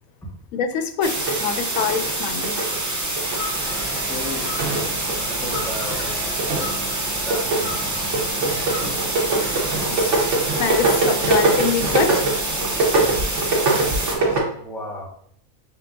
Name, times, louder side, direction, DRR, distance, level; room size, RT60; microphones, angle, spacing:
voice 1, 0.5-3.3 4.9-5.4 9.3-12.3, left 7 dB, 85° left, 9 dB, 1.0 m, -26 dB
sound 1, 1.0-14.1, right 2 dB, 20° right, 0.4 m, -27 dB
sound 2, 1.2-14.4, right 3 dB, 65° right, 1.3 m, -24 dB
sound 3, 2.5-9.6, left 4 dB, 55° left, 1.1 m, -39 dB
voice 2, 3.9-4.6 5.3-6.1 7.0-7.6 8.0-8.1 14.4-15.1, left 2 dB, ahead, -4 dB, 1.1 m, -34 dB
5.8 x 3.3 x 2.6 m, 0.64 s
omnidirectional pair, 1.4 m